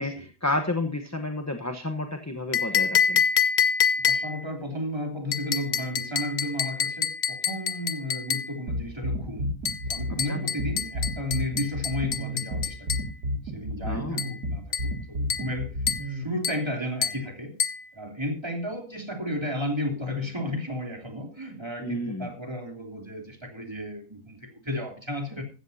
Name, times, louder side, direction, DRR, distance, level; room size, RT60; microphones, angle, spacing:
voice 1, 0.0-3.2 10.1-10.4 13.8-14.2 21.8-22.3, left 2 dB, 15° left, 5 dB, 0.8 m, -31 dB
sound 1, 2.5-4.5 5.3-8.6 9.7-13.1 14.2-14.4 14.7-15.0 15.3-15.6 15.9-16.1 16.4-16.7 17.0-17.3 17.6-17.9, left 7 dB, 50° left, 1.0 m, -27 dB
voice 2, 4.0-9.5 9.9-13.1 13.5-15.7 16.0-17.6 17.9-25.4, left 1 dB, 15° right, 2 dB, 3.1 m, -33 dB
sound 2, 8.7-16.2, equal, 80° right, 2.7 m, -31 dB
15.5 x 13.5 x 2.8 m, 0.35 s
omnidirectional pair, 1.7 m